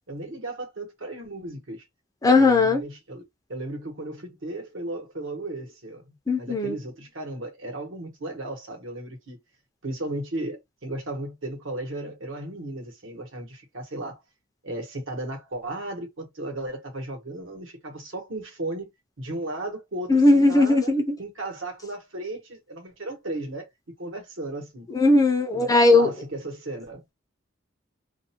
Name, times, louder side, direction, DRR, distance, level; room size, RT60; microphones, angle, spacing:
voice 1, 0.1-1.8 2.3-3.2 3.5-9.4 9.8-14.2 14.6-18.9 19.2-20.9 21.2-23.7 24.0-24.9 25.5-27.0, right 2 dB, 75° right, 1.1 m, -35 dB
voice 2, 2.2-2.8 6.3-6.8 20.1-21.0 24.9-26.1, left 2 dB, 20° left, 0.5 m, -18 dB
2.5 x 2.1 x 2.8 m
head